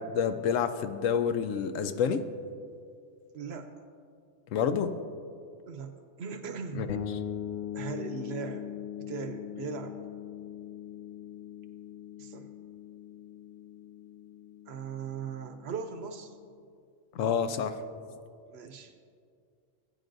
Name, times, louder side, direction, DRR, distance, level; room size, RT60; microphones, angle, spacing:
voice 1, 0.0-2.2 4.5-4.9 6.7-6.9 17.1-17.8, left 7 dB, 85° left, 10 dB, 1.0 m, -28 dB
voice 2, 3.3-3.7 5.7-6.9 7.7-8.7 9.0-10.0 12.2-12.5 14.7-16.3 18.5-18.9, right 6 dB, 65° right, 8 dB, 0.8 m, -39 dB
sound 1, 6.9-16.5, left 10 dB, 65° left, 1.0 m, -41 dB
16.5 x 9.3 x 2.6 m, 2.3 s
omnidirectional pair, 1.3 m